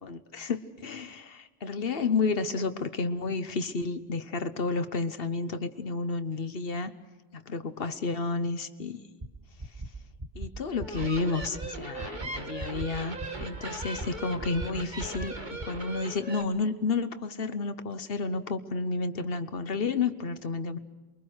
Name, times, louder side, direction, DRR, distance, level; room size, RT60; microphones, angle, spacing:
voice 1, 0.0-6.9 7.3-9.0 10.3-20.8, left 4 dB, 60° left, 11 dB, 1.3 m, -31 dB
sound 1, 9.2-9.3 9.6-9.9 10.2-10.5 10.8-11.1 11.4-11.7 12.0-12.3 12.6-12.9 13.2-13.5 13.8-14.1 14.4-14.7 15.0-15.3 15.6-15.7, right 2 dB, 25° right, 1.5 m, -37 dB
sound 2, 10.7-16.4, right 2 dB, 45° right, 2.2 m, -39 dB
28.5 x 23.0 x 6.4 m, 1.2 s
omnidirectional pair, 1.1 m